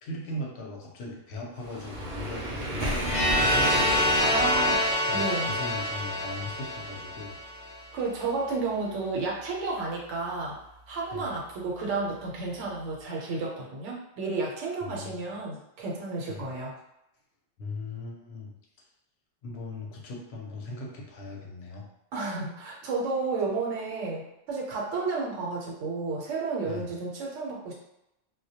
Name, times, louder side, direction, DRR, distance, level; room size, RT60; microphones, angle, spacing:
voice 1, 0.0-4.3 5.1-7.4 11.1-11.3 14.8-15.1 16.3-16.5 17.6-18.5 19.4-21.9 26.6-26.9, left 2 dB, 70° left, -1 dB, 0.8 m, -39 dB
Waves surf, 1.6-4.9, right 1 dB, 50° right, 0.6 m, -31 dB
sound 1, 3.0-7.9, left 1 dB, 35° left, 0.7 m, -26 dB
voice 2, 4.2-4.8 5.1-5.5 7.9-10.6 10.9-16.7 22.1-27.7, right 3 dB, 85° right, -2 dB, 1.0 m, -32 dB
2.2 x 2.1 x 2.7 m, 0.84 s
omnidirectional pair, 1.2 m